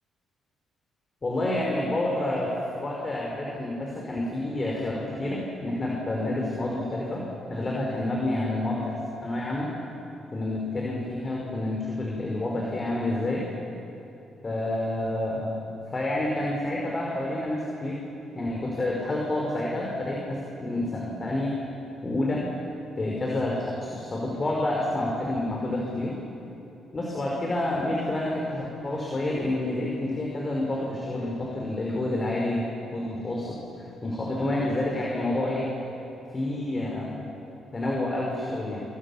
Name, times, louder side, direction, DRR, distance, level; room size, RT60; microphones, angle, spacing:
voice 1, 1.2-2.5 2.8-9.7 10.3-13.5 14.4-15.6 15.9-18.0 18.3-21.5 22.0-22.5 23.0-26.2 26.9-35.7 36.3-37.1 37.7-38.8, left 1 dB, 30° left, -2 dB, 5.5 m, -29 dB
29.0 x 28.0 x 7.4 m, 3.0 s
cardioid pair, 90°, 0 cm